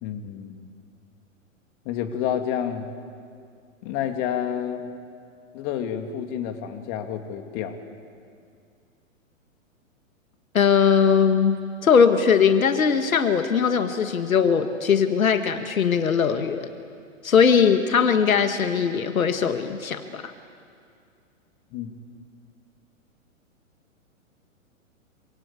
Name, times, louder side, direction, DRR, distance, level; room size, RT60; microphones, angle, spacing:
voice 1, 0.0-0.7 1.8-2.9 3.8-4.9 5.5-7.8 21.7-21.9, left 9 dB, 40° left, 6 dB, 2.7 m, -29 dB
voice 2, 10.5-16.7 17.2-20.3, left 6 dB, 80° left, 8 dB, 1.8 m, -20 dB
27.0 x 25.5 x 8.4 m, 2.3 s
hypercardioid pair, 115°, 41 cm